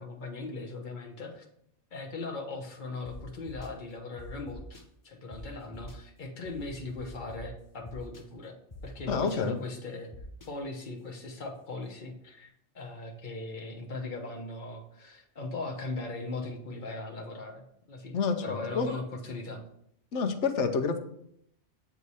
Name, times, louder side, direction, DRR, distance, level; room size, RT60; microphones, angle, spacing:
voice 1, 0.0-1.4 1.9-8.5 8.8-10.1 10.5-19.6, left 3 dB, 45° left, 1 dB, 1.1 m, -39 dB
sound 1, 3.0-3.1 3.5-3.7 4.2-4.8 5.3-5.4 5.7-5.9 6.4-7.4 7.9-8.2 8.7-9.3 10.1-10.5, left 3 dB, 20° left, 0.6 m, -46 dB
voice 2, 9.1-9.6 18.1-18.9 20.1-21.0, left 5 dB, 85° left, 6 dB, 1.0 m, -28 dB
8.3 x 2.8 x 4.7 m, 0.73 s
omnidirectional pair, 1.2 m